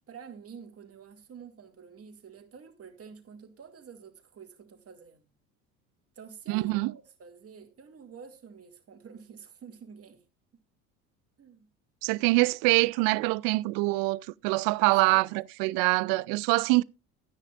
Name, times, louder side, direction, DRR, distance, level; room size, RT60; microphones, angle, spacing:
voice 1, 0.1-5.3 6.2-10.2 11.4-11.7 14.6-16.0, right 6 dB, 35° right, 2.5 m, -49 dB
voice 2, 6.5-6.9 12.0-16.8, right 23 dB, 55° right, 0.5 m, -25 dB
13.0 x 9.8 x 2.5 m
hypercardioid pair, 65°, 42 cm